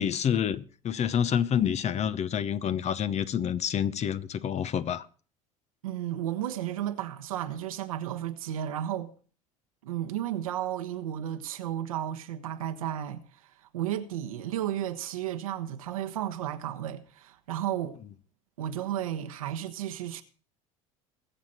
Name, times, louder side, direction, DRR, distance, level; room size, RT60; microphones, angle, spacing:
voice 1, 0.0-5.1, left 8 dB, 40° left, 0.9 m, -28 dB
voice 2, 5.8-9.1 9.8-13.2 13.7-18.0 18.6-20.2, right 11 dB, 80° right, 1.2 m, -33 dB
21.5 x 7.4 x 4.4 m
hypercardioid pair, 75°, 18 cm